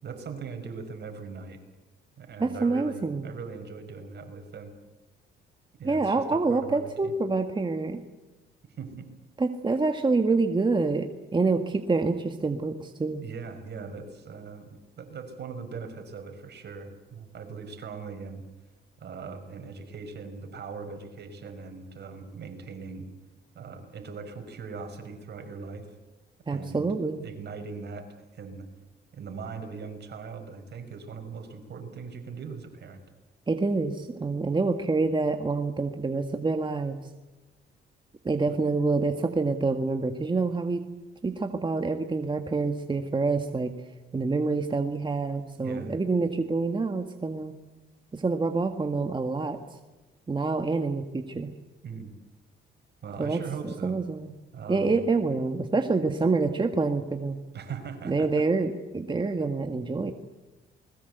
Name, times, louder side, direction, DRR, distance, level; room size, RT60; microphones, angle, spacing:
voice 1, 0.0-1.6 2.2-4.7 5.8-7.1 8.8-9.1 13.2-18.4 19.0-23.1 23.6-25.9 26.5-26.8 27.2-28.1 28.3-28.7 29.1-33.0 38.5-38.6 45.6-45.9 51.8-52.1 53.0-54.0 54.5-55.0 57.5-58.4, right 5 dB, 60° right, 6 dB, 5.5 m, -40 dB
voice 2, 2.4-3.3 5.8-8.0 9.4-13.2 26.5-27.2 33.5-37.0 38.2-40.8 41.2-43.7 44.1-47.5 48.1-49.6 50.3-51.5 53.2-54.3 54.7-57.4 58.0-60.1, right 3 dB, 25° right, 6 dB, 1.7 m, -27 dB
28.5 x 21.0 x 8.1 m, 1.1 s
cardioid pair, 90°, 20 cm